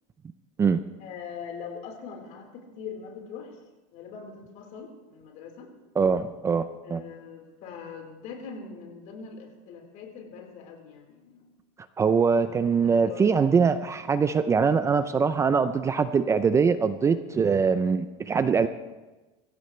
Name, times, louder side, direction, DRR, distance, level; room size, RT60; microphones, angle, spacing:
voice 1, 1.0-3.6 3.9-5.7 6.8-11.5 12.8-13.4, left 6 dB, 55° left, 1 dB, 4.3 m, -42 dB
voice 2, 6.0-7.0 12.0-18.7, right 5 dB, 20° right, 11 dB, 0.5 m, -23 dB
23.5 x 15.5 x 3.3 m, 1.2 s
supercardioid pair, 140°, 16 cm